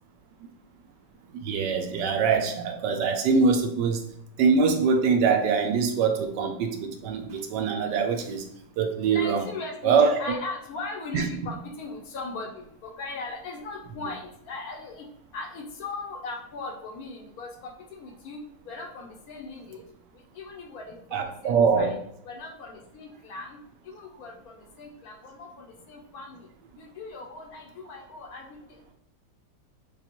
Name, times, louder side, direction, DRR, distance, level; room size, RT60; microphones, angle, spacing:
voice 1, 1.3-4.0 4.4-8.4 8.8-9.5 9.8-10.2 11.1-11.3 21.1-21.9, right 5 dB, 85° right, 4 dB, 1.3 m, -23 dB
voice 2, 9.1-15.0 15.3-19.8 20.3-22.0 22.2-23.6 23.8-26.5 26.8-28.9, left 3 dB, 65° left, 2 dB, 1.1 m, -39 dB
6.7 x 2.3 x 3.0 m, 0.72 s
omnidirectional pair, 1.8 m